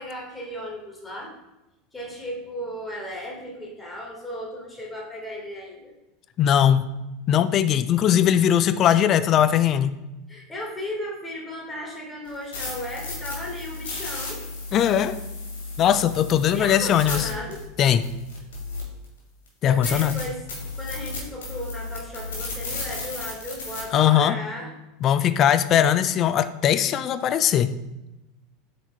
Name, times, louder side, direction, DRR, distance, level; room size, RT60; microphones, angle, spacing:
voice 1, 0.0-1.3 1.9-5.9 10.3-14.4 16.5-17.6 19.6-20.4 20.8-24.7, left 1 dB, 10° left, -2 dB, 1.8 m, -35 dB
voice 2, 6.4-6.9 7.3-10.0 14.7-15.2 15.8-17.3 17.8-18.0 19.6-20.2 23.9-24.4 25.0-27.8, left 10 dB, 35° left, 13 dB, 0.3 m, -20 dB
sound 1, 12.3-19.0 19.5-19.6 19.8-23.8, left 3 dB, 65° left, 2.0 m, -34 dB
7.9 x 5.9 x 2.3 m, 0.98 s
figure-of-eight pair, 80°, 0 cm